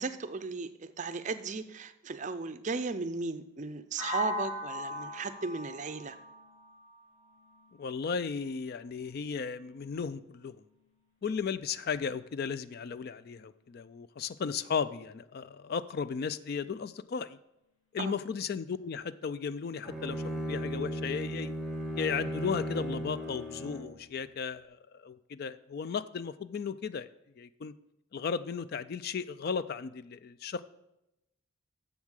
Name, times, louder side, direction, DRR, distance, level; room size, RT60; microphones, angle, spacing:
voice 1, 0.0-6.2 18.0-18.2, right 4 dB, 35° right, 11 dB, 0.4 m, -36 dB
sound 1, 4.0-7.9, left 1 dB, 60° left, 2.4 m, -39 dB
voice 2, 7.8-10.6 11.2-17.4 17.9-21.5 22.0-27.1 27.4-27.7 28.1-30.6, left 6 dB, 45° left, 15 dB, 0.3 m, -35 dB
Bowed string instrument, 19.8-24.0, equal, ahead, 0.9 m, -36 dB
7.3 x 7.1 x 6.4 m, 0.88 s
head